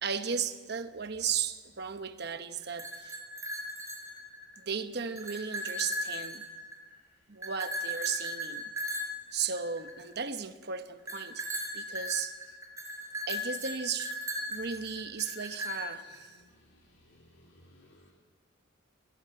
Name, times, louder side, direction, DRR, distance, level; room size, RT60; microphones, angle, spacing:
voice 1, 0.0-3.2 4.6-6.4 7.3-8.7 9.3-11.5 11.7-12.6 13.3-14.2 14.5-16.4, right 6 dB, 55° right, 1.1 m, -35 dB
sound 1, 2.6-4.6 5.0-6.9 7.4-10.1 11.1-16.2, equal, 15° right, 5.0 m, -37 dB
voice 2, 16.2-18.1, left 1 dB, 70° left, 3.0 m, -61 dB
22.0 x 18.5 x 7.8 m
head